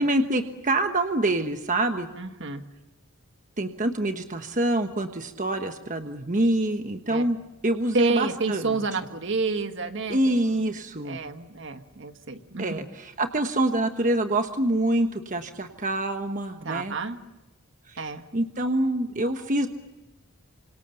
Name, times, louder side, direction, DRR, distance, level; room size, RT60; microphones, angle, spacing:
voice 1, 0.0-2.1 3.6-7.4 7.6-8.8 10.1-11.2 12.6-17.0 17.9-18.0 18.3-19.7, right 1 dB, 35° right, 6 dB, 1.3 m, -26 dB
voice 2, 2.1-2.6 7.1-7.2 7.9-10.4 11.0-12.9 16.6-17.2 18.0-18.2, right 3 dB, 60° right, 7 dB, 1.7 m, -29 dB
28.5 x 26.0 x 7.0 m, 1.0 s
head